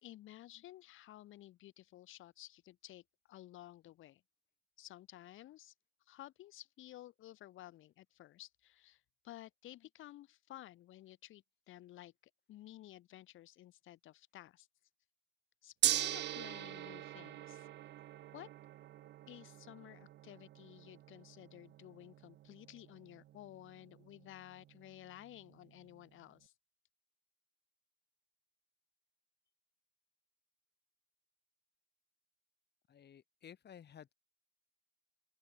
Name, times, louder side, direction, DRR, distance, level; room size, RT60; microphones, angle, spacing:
voice 1, 0.0-4.2 4.8-5.7 6.1-12.1 12.5-14.7 15.6-17.7 18.3-18.5 19.3-26.5, left 14 dB, 85° left, 2.2 m, -54 dB
Gong, 15.8-26.0, right 13 dB, 60° right, 0.5 m, -42 dB
voice 2, 32.9-34.1, left 9 dB, 55° left, 4.0 m, -55 dB
open air
cardioid pair, 90°, 20 cm